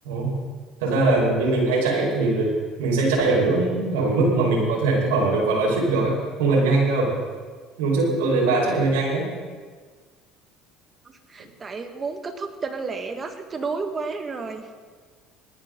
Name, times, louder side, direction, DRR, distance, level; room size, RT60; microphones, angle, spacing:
voice 1, 0.8-2.5 2.8-6.1 6.4-7.1 7.8-9.2, right 3 dB, 85° right, -2 dB, 5.1 m, -21 dB
voice 2, 11.0-14.7, right 4 dB, 30° right, 7 dB, 1.7 m, -31 dB
20.0 x 13.0 x 3.9 m, 1.5 s
supercardioid pair, 80°, 0 cm